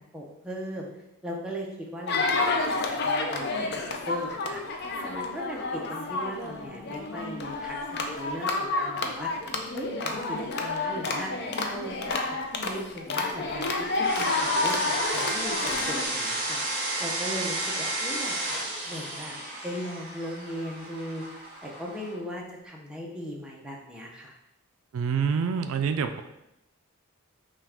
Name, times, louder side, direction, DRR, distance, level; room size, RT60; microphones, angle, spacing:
voice 1, 0.1-0.9 1.2-9.3 9.7-11.3 11.7-12.2 12.6-18.6 18.8-19.4 19.6-21.2 21.6-24.4, equal, 5° right, -3 dB, 0.6 m, -38 dB
sound 1, 2.1-16.0, left 3 dB, 50° left, 0.4 m, -30 dB
sound 2, 14.0-22.1, right 1 dB, 40° right, 1.4 m, -32 dB
voice 2, 24.9-26.2, right 6 dB, 70° right, 8 dB, 0.3 m, -26 dB
5.8 x 2.3 x 3.5 m, 0.88 s
head